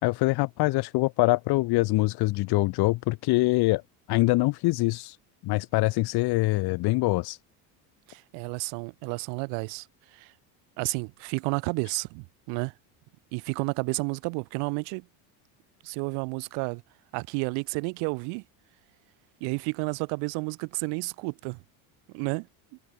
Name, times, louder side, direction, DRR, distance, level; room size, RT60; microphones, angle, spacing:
voice 1, 0.0-3.8 4.1-5.2 5.4-7.4, left 21 dB, 65° left, 2.5 m, -24 dB
voice 2, 8.1-9.9 10.1-10.3 10.8-12.7 13.3-15.0 15.8-16.8 17.1-18.4 19.4-21.6 22.1-22.5, right 35 dB, 80° right, 4.6 m, -31 dB
cardioid pair, 140°, 42 cm